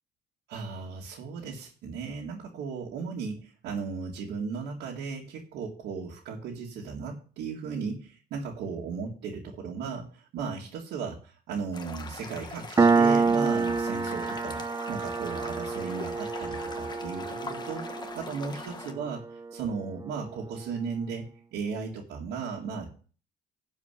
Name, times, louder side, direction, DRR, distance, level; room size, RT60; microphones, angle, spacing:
voice 1, 0.5-11.2 11.5-14.6 14.9-21.3 21.5-22.9, right 5 dB, 80° right, -3 dB, 2.2 m, -36 dB
sound 1, 11.7-18.9, left 4 dB, 25° left, 1.5 m, -42 dB
Piano, 12.8-19.9, right 4 dB, 20° right, 0.6 m, -27 dB
11.5 x 5.1 x 8.3 m, 0.40 s
cardioid pair, 110°, 17 cm